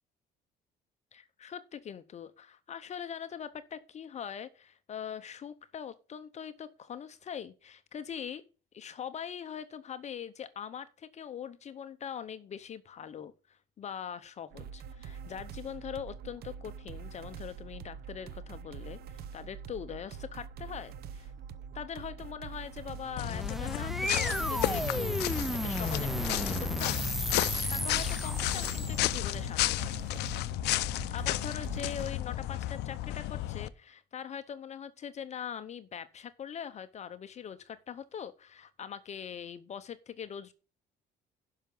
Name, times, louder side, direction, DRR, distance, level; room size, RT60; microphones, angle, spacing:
voice 1, 1.1-8.4 8.7-21.3 21.7-27.1 27.7-30.2 30.9-40.5, left 8 dB, 40° left, 0.7 m, -42 dB
sound 1, 14.5-32.1, right 7 dB, 70° right, 0.8 m, -45 dB
sound 2, 23.0-29.4, equal, ahead, 0.5 m, -34 dB
sound 3, 23.2-33.7, left 15 dB, 80° left, 0.5 m, -33 dB
11.0 x 5.8 x 5.4 m
cardioid pair, 110°, 17 cm